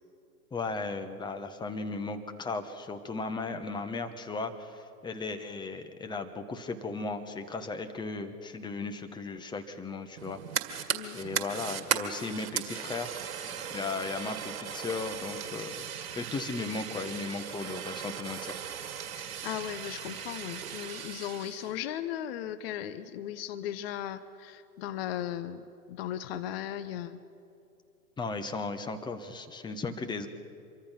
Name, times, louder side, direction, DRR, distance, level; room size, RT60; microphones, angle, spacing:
voice 1, 0.5-13.1 13.7-15.8 16.2-18.6 28.2-30.3, left 3 dB, 10° left, 7 dB, 1.3 m, -36 dB
Fire, 10.2-21.7, right 8 dB, 65° right, 2.2 m, -37 dB
voice 2, 19.2-25.6 25.9-27.2, left 11 dB, 40° left, 13 dB, 1.0 m, -37 dB
26.0 x 23.5 x 5.9 m, 2.7 s
hypercardioid pair, 115°, 45 cm